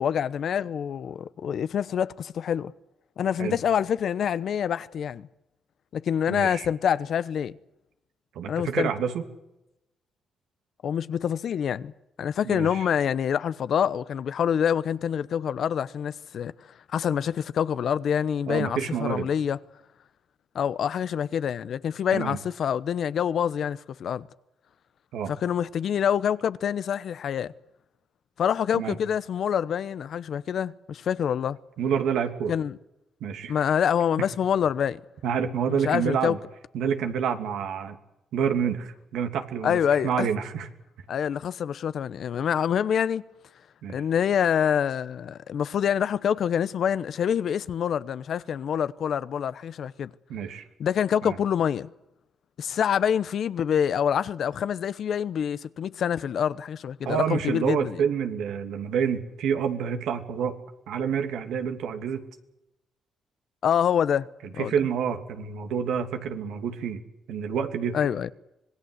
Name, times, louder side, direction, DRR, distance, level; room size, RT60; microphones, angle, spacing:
voice 1, 0.0-2.7 3.2-5.3 5.9-7.5 8.5-8.9 10.8-11.9 12.2-16.5 16.9-19.6 20.5-24.2 25.3-27.5 28.4-31.6 32.5-32.8 33.5-35.0 35.7-36.4 39.6-40.3 41.1-43.2 43.9-50.1 50.8-51.9 52.6-58.0 63.6-64.3 64.6-64.7 67.9-68.3, left 8 dB, 65° left, 0.9 m, -26 dB
voice 2, 6.3-6.7 8.3-9.2 12.4-12.9 18.5-19.3 22.1-22.4 25.1-25.3 28.7-28.9 31.8-32.5 33.2-33.7 35.2-36.4 36.7-38.0 38.3-40.7 43.8-44.0 50.3-50.6 51.2-51.4 57.0-60.6 60.9-62.2 64.6-67.0 67.3-68.0, right 7 dB, 85° right, 2.6 m, -28 dB
25.5 x 20.0 x 8.0 m
cardioid pair, 80°, 0 cm